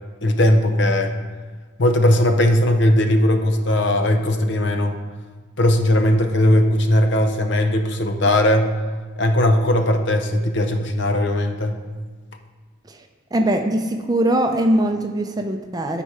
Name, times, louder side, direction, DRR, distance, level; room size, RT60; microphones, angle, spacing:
voice 1, 0.2-1.2 1.8-5.0 5.6-8.7 9.2-11.8, left 1 dB, 60° left, 6 dB, 0.7 m, -18 dB
voice 2, 13.3-16.0, right 1 dB, 20° right, 5 dB, 0.5 m, -21 dB
11.5 x 4.2 x 4.9 m, 1.4 s
head